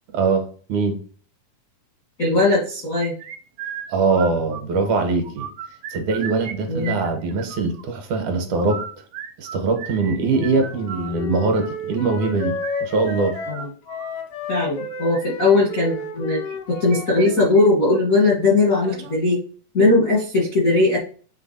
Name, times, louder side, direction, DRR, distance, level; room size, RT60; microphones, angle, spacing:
voice 1, 0.1-1.0 3.9-5.5 5.9-8.8 9.4-12.5 12.8-13.4, right 4 dB, 70° right, 2.3 m, -22 dB
voice 2, 2.2-3.1 6.7-7.0 13.5-13.7 14.5-16.4 16.7-19.4 19.7-21.0, left 2 dB, 60° left, 0.8 m, -19 dB
sound 1, 3.0-4.9 5.2-6.5 6.8-7.8 8.5-14.2 14.9-15.2 16.5-17.3 17.6-17.7 18.1-18.2 18.8-19.2, right 8 dB, 90° right, 1.3 m, -36 dB
Wind instrument woodwind instrument, 10.3-17.6, left 3 dB, 90° left, 2.9 m, -32 dB
7.7 x 3.3 x 4.1 m
omnidirectional pair, 3.8 m